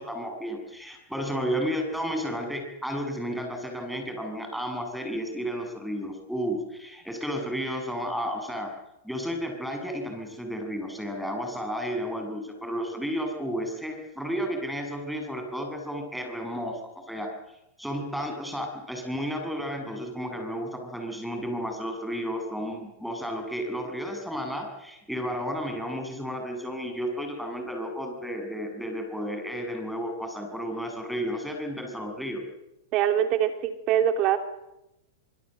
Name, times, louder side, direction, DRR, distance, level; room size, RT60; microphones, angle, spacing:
voice 1, 0.0-8.7 9.0-17.3 17.8-32.4, equal, ahead, 4 dB, 7.3 m, -32 dB
voice 2, 32.9-34.4, right 10 dB, 45° right, 6 dB, 3.3 m, -23 dB
24.0 x 24.0 x 7.9 m, 0.88 s
hypercardioid pair, 120°, 0 cm